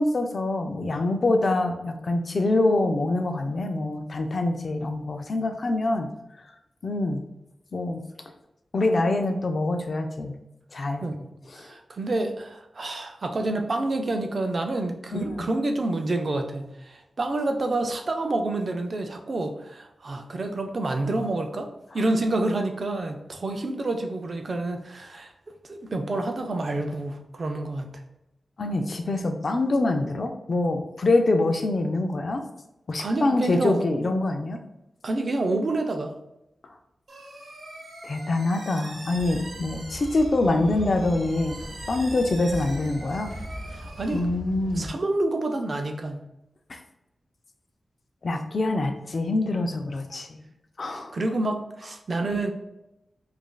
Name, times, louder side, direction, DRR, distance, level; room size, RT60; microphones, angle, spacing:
voice 1, 0.0-6.1 6.8-7.3 7.7-8.0 8.7-10.4 10.7-11.1 11.5-11.7 15.1-15.4 28.6-32.4 32.9-34.6 38.0-43.3 44.1-44.9 46.7-46.8 48.2-50.3 50.8-51.2 52.2-52.4, left 2 dB, 45° left, 5 dB, 0.4 m, -25 dB
voice 2, 11.0-21.7 21.9-25.3 25.6-27.9 33.0-34.1 35.0-36.1 43.7-44.2 44.7-46.2 51.1-52.5, right 2 dB, 45° right, 5 dB, 0.4 m, -28 dB
sound 1, 37.1-44.2, right 1 dB, 70° right, 0.8 m, -43 dB
sound 2, 39.1-44.9, equal, 10° left, 0.9 m, -39 dB
5.0 x 2.5 x 2.3 m, 0.89 s
wide cardioid pair, 165°, 0 cm